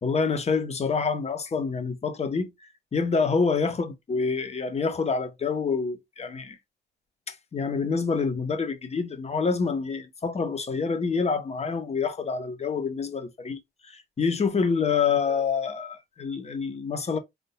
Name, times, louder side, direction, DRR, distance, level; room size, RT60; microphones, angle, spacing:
voice 1, 0.0-2.5 2.9-6.6 7.3-13.6 13.9-17.2, left 5 dB, 35° left, 0.9 m, -27 dB
3.6 x 2.7 x 2.3 m
cardioid pair, 90°, 20 cm